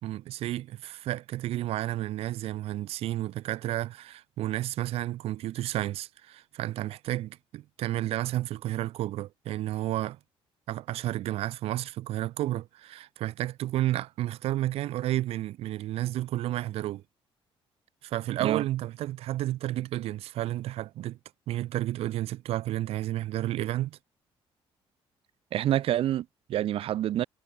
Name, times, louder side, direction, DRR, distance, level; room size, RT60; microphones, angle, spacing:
voice 1, 0.0-10.2 10.7-17.0 18.0-21.2 21.5-24.0, right 14 dB, 90° right, 3.6 m, -31 dB
voice 2, 25.5-27.2, right 12 dB, 70° right, 4.5 m, -27 dB
cardioid pair, 140°, 10 cm